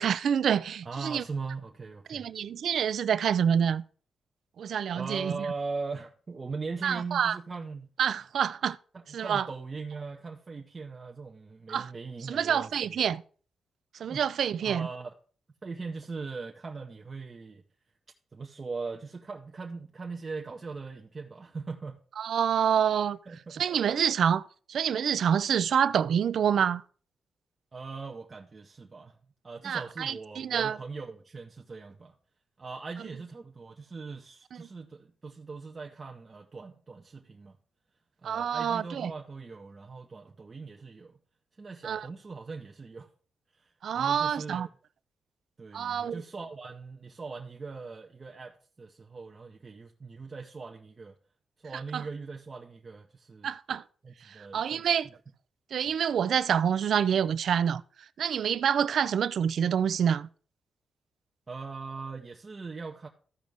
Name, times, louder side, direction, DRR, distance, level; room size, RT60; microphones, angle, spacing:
voice 1, 0.0-1.2 2.1-3.8 4.6-5.5 6.8-7.4 8.0-8.8 9.1-9.5 11.7-11.9 12.2-13.2 14.0-14.9 22.2-23.2 23.5-24.4 24.7-26.8 29.6-30.8 38.2-39.1 41.8-42.1 43.8-44.7 45.7-46.2 51.9-52.0 53.4-53.8 54.2-55.1 55.7-57.8 58.2-60.3, right 8 dB, 70° right, 0.3 m, -27 dB
voice 2, 0.8-2.3 4.9-7.9 8.9-12.7 13.9-14.2 14.6-15.1 15.6-17.6 18.3-22.0 23.3-23.6 27.7-29.2 29.4-32.1 32.6-37.6 38.2-41.2 41.6-43.1 43.5-44.7 45.6-51.1 51.6-53.5 54.0-54.8 61.5-63.1, right 4 dB, 35° right, 0.6 m, -40 dB
13.5 x 5.2 x 3.4 m
cardioid pair, 110°, 0 cm